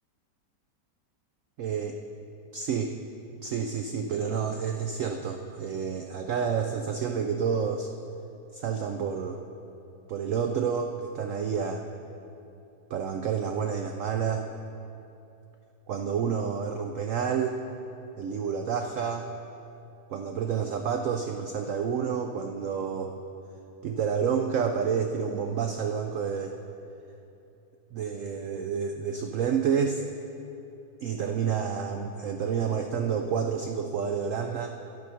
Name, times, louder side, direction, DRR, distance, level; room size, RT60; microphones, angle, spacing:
voice 1, 1.6-2.0 2.5-2.9 3.4-7.9 8.5-9.4 10.1-11.9 12.9-14.5 15.9-17.6 18.2-19.3 20.1-23.1 23.8-26.6 27.9-30.0 31.0-34.8, right 7 dB, 90° right, 5 dB, 0.7 m, -29 dB
11.0 x 7.7 x 5.6 m, 2.8 s
omnidirectional pair, 1.9 m